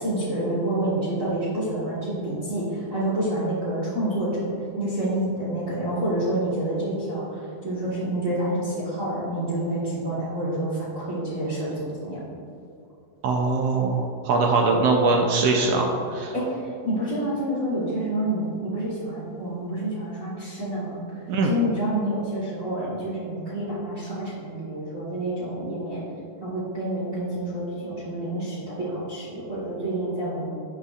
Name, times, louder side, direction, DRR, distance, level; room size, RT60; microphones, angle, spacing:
voice 1, 0.0-4.5 4.8-12.2 16.3-21.0 21.4-26.0 26.4-30.5, right 1 dB, 40° right, -7 dB, 1.1 m, -28 dB
voice 2, 13.2-16.3 21.3-21.5, right 3 dB, 80° right, 1 dB, 1.4 m, -22 dB
11.0 x 7.0 x 2.4 m, 2.7 s
omnidirectional pair, 3.6 m